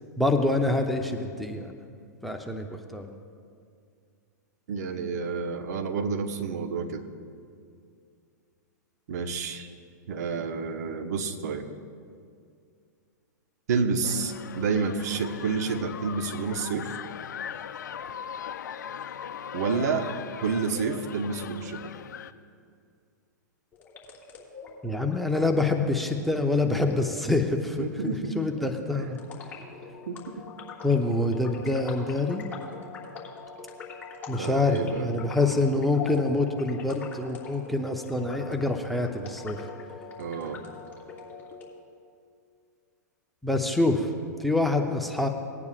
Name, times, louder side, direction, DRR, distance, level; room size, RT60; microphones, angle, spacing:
voice 1, 0.2-1.7 2.2-3.1 24.8-29.2 30.8-32.5 34.3-39.6 43.4-44.1 44.4-45.3, left 2 dB, ahead, 5 dB, 0.8 m, -26 dB
voice 2, 4.7-7.1 9.1-9.7 10.1-11.6 13.7-16.9 19.5-20.1 20.4-21.8 27.8-28.5 28.9-29.3 30.1-30.5 34.4-35.1 40.2-40.6, right 5 dB, 60° right, 6 dB, 1.1 m, -29 dB
sound 1, 14.0-22.3, left 8 dB, 75° left, 0.5 m, -39 dB
sound 2, 23.7-41.7, left 5 dB, 15° left, 2.9 m, -44 dB
20.0 x 9.5 x 2.5 m, 2.3 s
hypercardioid pair, 110°, 10 cm